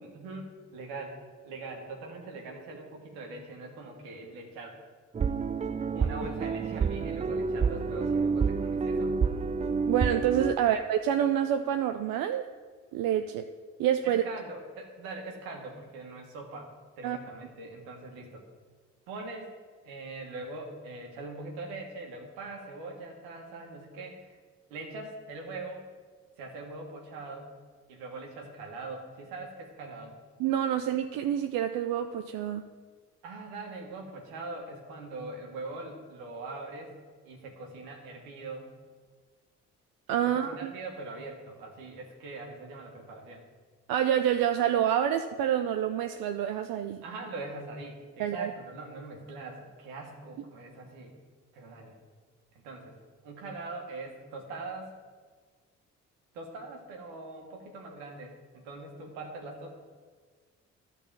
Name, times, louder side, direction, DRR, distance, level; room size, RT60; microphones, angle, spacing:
voice 1, 0.0-4.8 5.9-9.5 10.5-10.7 14.0-18.4 19.1-19.5 19.8-24.4 24.7-25.9 26.4-27.5 27.9-30.2 30.7-30.8 33.2-36.9 37.2-38.7 40.2-43.4 47.0-51.1 51.5-51.9 52.5-53.0 53.2-54.9 56.3-59.8, right 3 dB, 90° right, 1 dB, 1.4 m, -42 dB
sound 1, 5.2-10.6, right 5 dB, 20° right, 0.3 m, -28 dB
voice 2, 9.9-12.5 12.9-13.5 13.8-14.2 17.0-17.2 30.4-32.6 40.1-40.7 43.9-47.0 48.2-48.5, right 10 dB, 70° right, 7 dB, 0.6 m, -27 dB
12.0 x 4.1 x 7.2 m, 1.5 s
hypercardioid pair, 50°, 35 cm